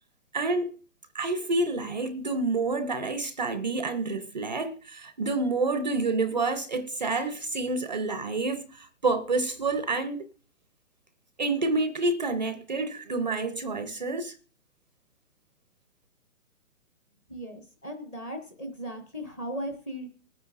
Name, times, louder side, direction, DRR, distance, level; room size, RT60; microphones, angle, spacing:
voice 1, 0.3-0.8 1.1-10.3 11.4-14.4, right 3 dB, 30° right, 0.5 m, -28 dB
voice 2, 17.3-20.1, equal, 10° left, 0.7 m, -37 dB
20.5 x 9.5 x 2.4 m
hypercardioid pair, 160°, 43 cm